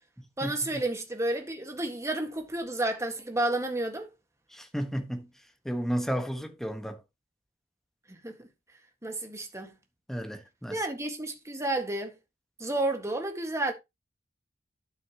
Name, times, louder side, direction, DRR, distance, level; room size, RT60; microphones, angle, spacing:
voice 1, 0.4-4.1 8.1-8.5 9.0-9.7 10.7-12.1 12.6-13.7, right 2 dB, 15° right, 1.7 m, -31 dB
voice 2, 4.5-5.3 5.6-7.0 10.1-10.8, equal, ahead, 1.4 m, -32 dB
12.0 x 6.5 x 3.0 m
head